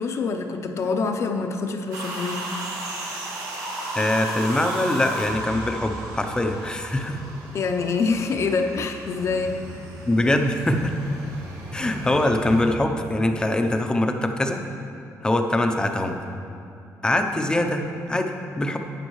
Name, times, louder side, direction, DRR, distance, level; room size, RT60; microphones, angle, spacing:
voice 1, 0.0-2.5 7.5-9.6, left 4 dB, 50° left, 5 dB, 0.7 m, -25 dB
sound 1, 1.9-12.6, right 1 dB, 90° right, 2.0 m, -34 dB
voice 2, 3.9-7.2 10.1-10.9 11.7-14.6 15.2-16.2 17.0-18.8, left 1 dB, 15° left, 5 dB, 0.6 m, -23 dB
12.0 x 8.7 x 3.1 m, 2.5 s
cardioid pair, 135°, 6 cm